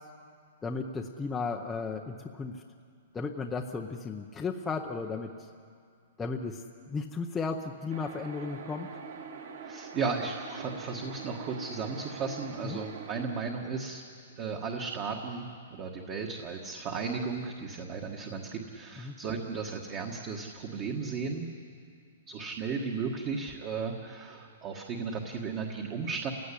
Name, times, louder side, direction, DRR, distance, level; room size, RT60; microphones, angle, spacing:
voice 1, 0.6-2.5 3.1-5.3 6.2-6.6 6.9-8.9 12.6-12.8 19.0-19.1, left 4 dB, 10° left, 1 dB, 0.7 m, -34 dB
sound 1, 7.9-13.3, right 5 dB, 65° right, 3.4 m, -43 dB
voice 2, 9.6-14.0 14.4-21.5 22.3-26.3, right 5 dB, 25° right, 2 dB, 1.5 m, -35 dB
29.0 x 17.0 x 9.9 m, 2.3 s
hypercardioid pair, 175°, 0 cm